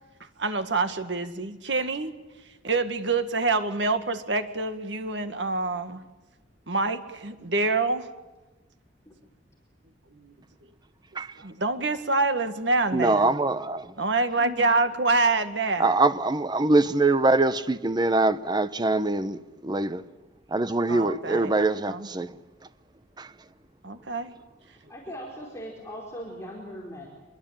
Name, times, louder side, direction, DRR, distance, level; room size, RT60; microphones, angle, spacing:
voice 1, 0.4-2.1 2.6-6.0 6.7-8.1 10.1-10.3 11.4-13.3 14.0-15.9 20.9-22.1 23.8-24.3, right 3 dB, 80° right, 1.9 m, -26 dB
voice 2, 12.9-13.9 15.8-20.0 20.5-22.3 23.2-23.3, right 2 dB, 25° right, 0.9 m, -23 dB
voice 3, 24.9-27.1, equal, 15° left, 4.7 m, -39 dB
25.0 x 22.5 x 9.0 m
head